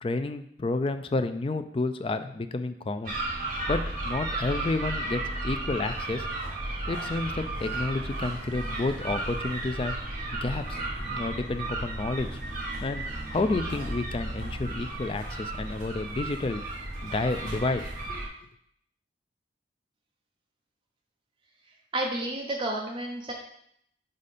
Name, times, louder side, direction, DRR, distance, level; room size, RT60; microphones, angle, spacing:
voice 1, 0.0-3.2 3.7-6.3 6.9-10.0 10.3-10.8 11.1-12.3 12.8-16.6 17.0-18.3, left 2 dB, 30° left, 9 dB, 0.4 m, -30 dB
sound 1, 3.0-18.3, right 2 dB, 50° right, 2.0 m, -34 dB
voice 2, 21.9-23.3, right 1 dB, 30° right, -1 dB, 0.8 m, -31 dB
5.3 x 5.0 x 4.1 m, 0.71 s
head